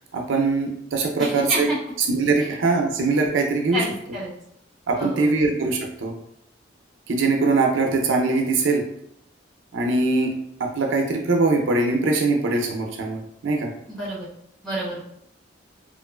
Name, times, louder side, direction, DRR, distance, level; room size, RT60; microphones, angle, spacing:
voice 1, 0.1-1.7 2.1-3.8 4.9-6.1 7.1-8.8 9.7-10.3 10.6-13.7, right 3 dB, 80° right, 2 dB, 0.4 m, -22 dB
voice 2, 1.2-1.8 2.4-2.5 3.7-4.3 4.9-5.5 13.9-14.3 14.6-15.0, right 1 dB, ahead, -9 dB, 0.9 m, -29 dB
3.0 x 2.4 x 2.2 m, 0.75 s
head